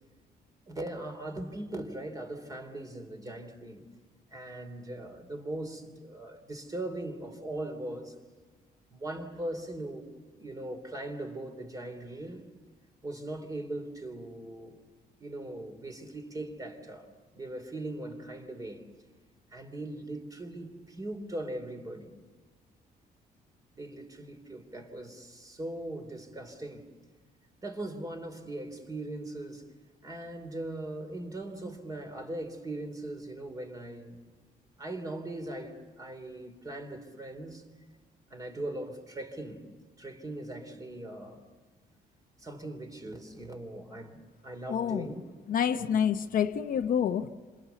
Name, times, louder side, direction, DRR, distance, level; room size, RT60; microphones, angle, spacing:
voice 1, 0.7-3.8 4.3-8.1 8.9-10.1 10.3-12.4 13.0-14.8 15.2-17.1 17.3-18.8 19.5-22.1 23.7-26.9 27.6-29.6 30.0-34.2 34.8-37.6 38.3-39.7 40.0-41.4 42.4-45.3 45.7-46.0, right 1 dB, 20° right, 3.2 m, -40 dB
voice 2, 44.7-45.1 45.5-47.3, left 8 dB, 55° left, 0.9 m, -27 dB
28.5 x 27.0 x 7.0 m
cardioid pair, 160°, 17 cm